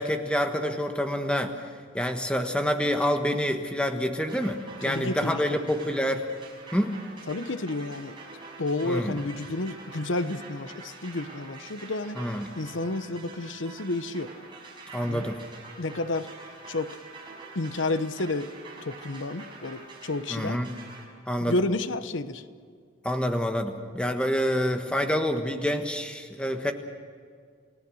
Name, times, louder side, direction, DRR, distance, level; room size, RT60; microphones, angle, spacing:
voice 1, 0.0-1.6 1.9-6.2 6.7-7.0 8.8-9.2 12.2-12.5 14.9-15.4 20.3-20.7 21.3-21.5 23.0-26.7, equal, 5° left, 5 dB, 1.4 m, -27 dB
sound 1, 4.3-21.0, right 3 dB, 25° right, 5.8 m, -46 dB
voice 2, 4.8-5.6 7.3-8.2 8.6-12.2 12.6-14.3 15.0-15.2 15.8-16.3 16.7-16.9 17.5-18.5 18.8-20.6 21.4-22.4, left 2 dB, 90° left, 12 dB, 1.0 m, -30 dB
29.5 x 17.5 x 6.4 m, 2.1 s
head